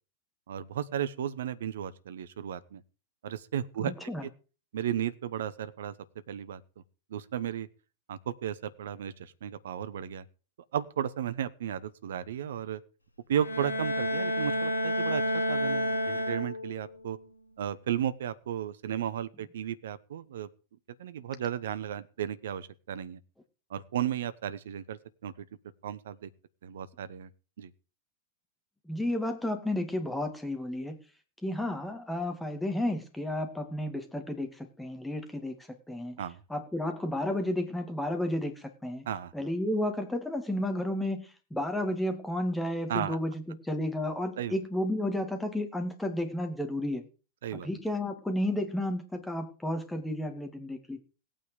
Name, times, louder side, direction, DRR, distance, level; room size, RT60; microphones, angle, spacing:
voice 1, 0.5-2.8 3.2-3.9 4.7-5.9 6.3-6.6 7.1-7.7 8.1-10.2 10.7-12.8 13.3-15.2 15.5-17.2 17.6-20.5 21.0-23.2 23.7-25.4 25.8-26.3 26.6-27.3 27.6-27.7 36.2-36.4 39.1-39.3 42.9-43.2 44.4-44.6 47.4-47.7, right 10 dB, 60° right, 14 dB, 1.0 m, -34 dB
voice 2, 3.8-4.2 28.9-31.0 31.4-36.2 36.5-39.1 39.3-47.0 47.5-51.0, left 1 dB, 5° left, 6 dB, 2.4 m, -32 dB
Bowed string instrument, 13.4-16.9, left 1 dB, 80° left, 1.9 m, -30 dB
17.0 x 9.0 x 5.2 m, 0.35 s
figure-of-eight pair, 90°, 0 cm